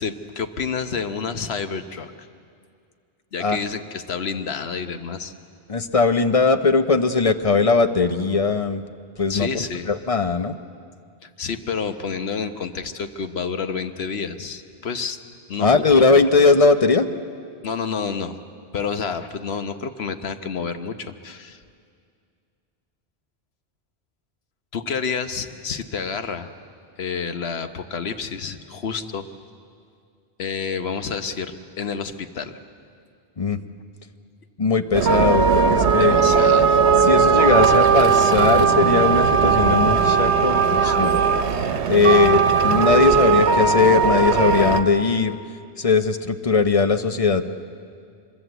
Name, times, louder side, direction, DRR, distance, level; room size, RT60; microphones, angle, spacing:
voice 1, 0.0-2.1 3.3-5.3 9.3-9.9 11.2-15.2 15.5-15.7 17.6-18.4 18.7-21.6 24.7-26.5 27.0-29.3 30.4-32.6 36.0-36.8, left 5 dB, 70° left, 9 dB, 1.3 m, -29 dB
voice 2, 5.7-8.8 9.2-10.5 15.6-17.1 33.4-33.6 34.6-36.2 37.0-41.2 41.9-45.4 45.8-47.5, left 4 dB, 35° left, 9 dB, 0.9 m, -19 dB
sound 1, 34.9-44.8, right 5 dB, 85° right, 1.2 m, -18 dB
24.5 x 22.0 x 8.1 m, 2.3 s
omnidirectional pair, 1.1 m